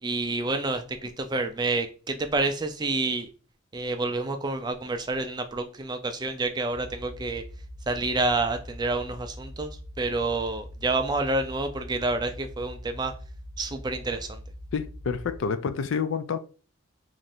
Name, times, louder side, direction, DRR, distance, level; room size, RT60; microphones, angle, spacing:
voice 1, 0.0-3.3 3.7-7.4 7.9-9.7 10.0-13.1 13.6-14.4, right 2 dB, 20° right, 0.4 m, -28 dB
sound 1, 6.7-15.4, equal, ahead, 0.9 m, -43 dB
voice 2, 14.7-16.4, left 6 dB, 60° left, 0.3 m, -28 dB
3.1 x 2.5 x 4.3 m
head